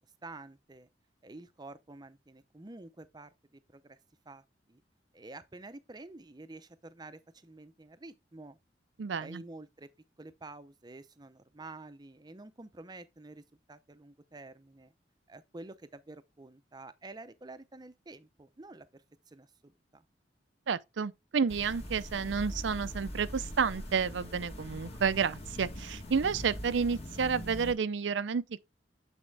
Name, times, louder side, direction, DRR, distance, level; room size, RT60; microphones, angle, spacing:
voice 1, 0.2-0.9 1.2-4.0 4.3-4.8 5.1-8.6 9.2-9.9 10.2-14.9 15.3-20.0, right 2 dB, 25° right, 0.6 m, -49 dB
voice 2, 9.0-9.4 20.7-28.6, right 6 dB, 90° right, 0.5 m, -30 dB
sound 1, 21.5-27.7, equal, 35° left, 1.7 m, -42 dB
8.7 x 4.3 x 3.3 m
head